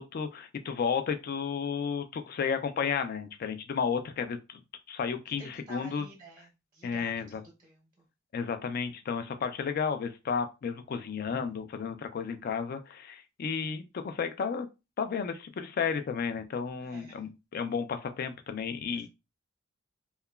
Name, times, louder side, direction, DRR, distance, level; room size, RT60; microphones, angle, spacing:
voice 1, 0.0-4.6 4.9-6.1 6.8-7.4 8.3-14.7 15.0-19.1, left 6 dB, 45° left, 0.3 m, -32 dB
voice 2, 5.4-8.1 16.8-17.2 18.9-19.1, right 2 dB, 20° right, 0.6 m, -51 dB
2.8 x 2.2 x 2.2 m
head